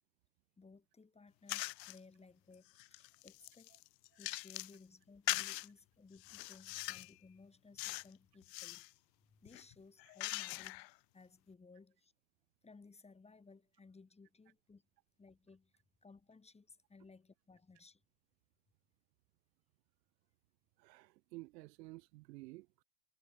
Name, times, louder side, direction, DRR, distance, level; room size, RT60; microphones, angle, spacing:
voice 1, 0.6-3.7 4.2-8.8 9.3-10.9 11.1-12.1 12.6-14.8 15.2-15.7 16.0-18.0, left 4 dB, 10° left, 2.5 m, -60 dB
sound 1, 1.5-2.0 2.5-4.8 5.3-5.7 6.2-7.1 7.8-8.1 8.4-8.9 9.5-10.9, left 22 dB, 75° left, 1.7 m, -42 dB
voice 2, 20.8-22.8, right 22 dB, 70° right, 2.1 m, -53 dB
supercardioid pair, 120°, 50 cm